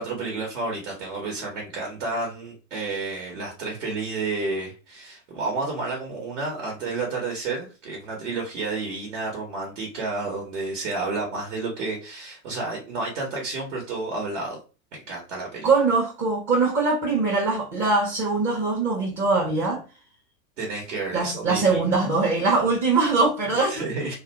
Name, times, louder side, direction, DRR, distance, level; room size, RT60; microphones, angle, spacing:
voice 1, 0.0-14.6 14.9-15.7 20.6-21.8 23.7-24.1, right 3 dB, 60° right, 1.0 m, -31 dB
voice 2, 15.6-19.8 21.1-23.8, right 3 dB, 30° right, 0.7 m, -22 dB
2.4 x 2.2 x 2.8 m
hypercardioid pair, 100°, 43 cm